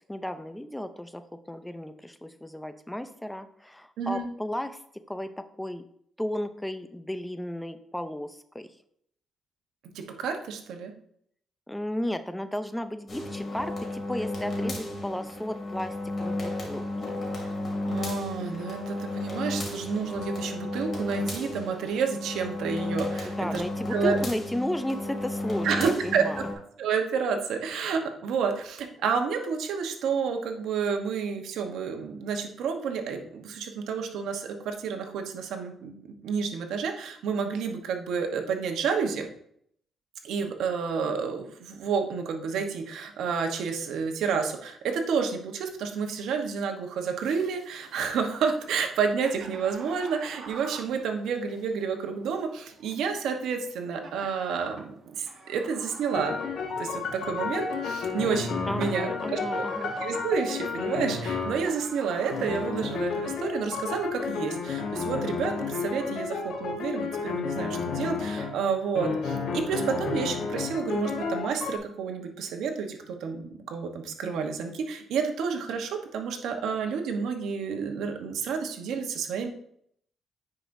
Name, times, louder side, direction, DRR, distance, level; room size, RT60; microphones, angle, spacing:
voice 1, 0.1-4.8 5.1-5.8 6.2-8.7 11.7-17.2 23.2-26.5 58.7-59.9, left 1 dB, 5° left, 10 dB, 0.5 m, -34 dB
voice 2, 4.0-4.3 10.2-10.9 17.3-17.5 17.9-23.6 23.9-24.2 25.6-26.4 26.8-35.9 36.2-39.3 40.2-56.3 56.8-79.5, right 6 dB, 80° right, 4 dB, 1.0 m, -30 dB
sound 1, 13.1-26.5, left 1 dB, 40° left, 2.4 m, -33 dB
sound 2, 47.2-63.1, right 4 dB, 60° right, 1.2 m, -48 dB
sound 3, 56.1-61.7 62.3-68.6 68.9-71.8, left 4 dB, 65° left, 1.1 m, -31 dB
9.8 x 4.9 x 2.6 m, 0.69 s
cardioid pair, 90°, 0 cm